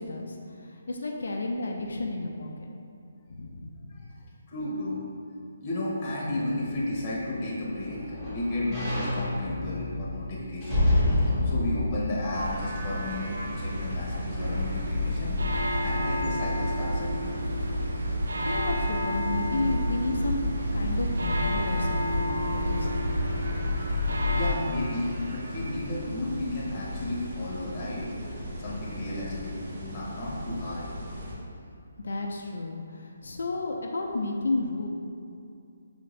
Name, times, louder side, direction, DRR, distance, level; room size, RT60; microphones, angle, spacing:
voice 1, 0.0-2.7 3.3-4.1 15.3-15.8 18.5-20.4 20.7-23.1 32.0-34.9, left 2 dB, 75° left, 0 dB, 0.4 m, -32 dB
voice 2, 4.5-5.0 5.6-10.8 11.4-17.4 24.3-28.1 28.6-30.9, left 1 dB, 20° left, -7 dB, 0.9 m, -33 dB
sound 1, 7.0-13.3 13.8-13.9, left 1 dB, 10° right, 1.3 m, -29 dB
sound 2, 12.3-31.3, equal, 45° right, 0.8 m, -37 dB
sound 3, 14.4-24.6, left 1 dB, 85° right, 0.4 m, -29 dB
5.5 x 2.6 x 3.1 m, 2.5 s
hypercardioid pair, 170°, 0 cm